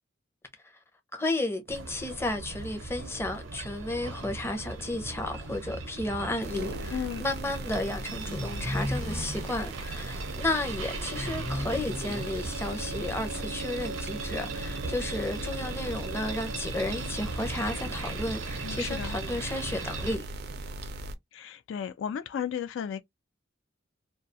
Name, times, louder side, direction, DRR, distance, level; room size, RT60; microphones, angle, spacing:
voice 1, 1.1-20.2, left 2 dB, 15° left, 0.5 m, -33 dB
sound 1, 1.7-20.2, right 3 dB, 90° right, 0.7 m, -38 dB
sound 2, 3.5-3.7 4.0-4.1 4.5-4.6 5.0-5.1 5.6-5.7 5.8-6.2 6.9-7.0 7.5-7.6 7.9-13.1, equal, 40° left, 1.0 m, -37 dB
sound 3, 6.4-21.2, right 1 dB, 55° right, 0.4 m, -39 dB
voice 2, 6.9-7.2 18.6-19.2 21.3-23.0, left 8 dB, 70° left, 0.3 m, -34 dB
2.3 x 2.3 x 2.6 m
head